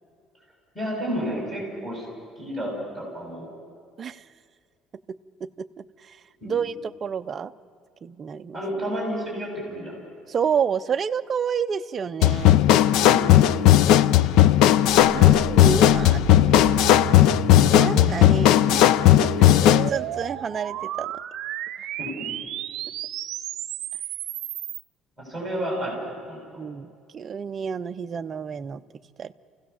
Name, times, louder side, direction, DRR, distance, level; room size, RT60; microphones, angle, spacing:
voice 1, 0.7-2.1 2.4-3.5 6.4-6.5 8.5-9.9 12.9-13.6 22.0-22.1 25.2-26.0 26.3-26.6, equal, 5° left, -2 dB, 7.2 m, -31 dB
voice 2, 5.1-6.2 6.4-7.5 8.0-8.6 10.3-12.6 15.1-16.2 16.5-16.7 17.8-18.9 19.4-21.1 26.6-28.8 29.2-29.3, right 7 dB, 30° right, 10 dB, 0.5 m, -29 dB
sound 1, 12.2-19.9, left 12 dB, 70° left, 0.5 m, -16 dB
sound 2, 14.9-24.8, right 12 dB, 60° right, 0.8 m, -33 dB
29.5 x 16.5 x 7.0 m, 2.2 s
cardioid pair, 165°, 0 cm